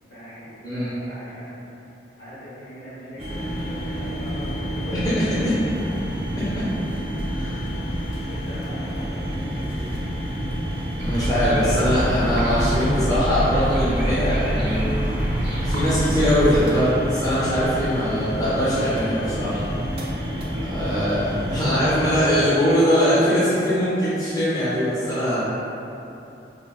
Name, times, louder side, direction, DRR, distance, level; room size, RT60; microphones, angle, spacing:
voice 1, 0.0-1.7 2.2-5.3 8.3-10.1 20.5-20.7 25.0-25.4, equal, 70° left, -11 dB, 1.3 m, -40 dB
sound 1, 3.2-22.2, equal, 30° right, 0.4 m, -29 dB
voice 2, 7.3-7.6 11.0-15.0 15.6-19.6 20.7-25.4, equal, 20° left, -12 dB, 0.5 m, -22 dB
sound 2, 11.0-16.6, equal, 70° right, 0.6 m, -26 dB
4.2 x 2.0 x 2.3 m, 2.9 s
head